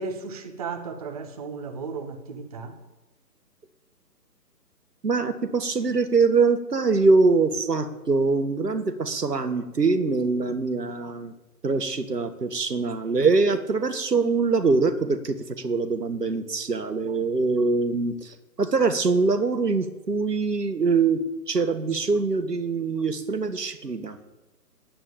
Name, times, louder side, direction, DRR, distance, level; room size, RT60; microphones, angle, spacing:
voice 1, 0.0-2.8, right 4 dB, 25° right, 0.9 m, -35 dB
voice 2, 5.0-11.3 11.6-21.2 21.5-24.2, right 4 dB, 75° right, 1.6 m, -23 dB
9.1 x 8.6 x 8.7 m
figure-of-eight pair, 140°, 49 cm